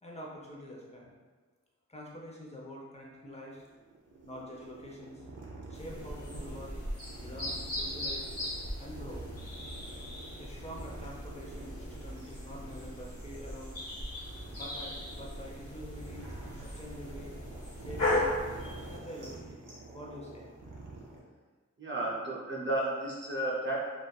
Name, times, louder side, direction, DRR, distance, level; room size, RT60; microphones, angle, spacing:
voice 1, 0.0-1.1 1.9-3.6 4.2-5.3 5.7-6.7 7.2-8.3 8.8-9.3 10.4-13.7 14.5-16.3 16.6-17.3 17.8-18.3 18.9-19.6 19.9-20.5, equal, 20° left, -3 dB, 0.6 m, -46 dB
sound 1, 3.5-21.2, right 2 dB, 85° right, 0.5 m, -47 dB
sound 2, 5.7-19.0, left 1 dB, 50° left, 1.1 m, -38 dB
voice 2, 21.8-23.8, right 1 dB, 40° right, -5 dB, 0.5 m, -32 dB
2.6 x 2.3 x 2.2 m, 1.4 s
wide cardioid pair, 40°, 30 cm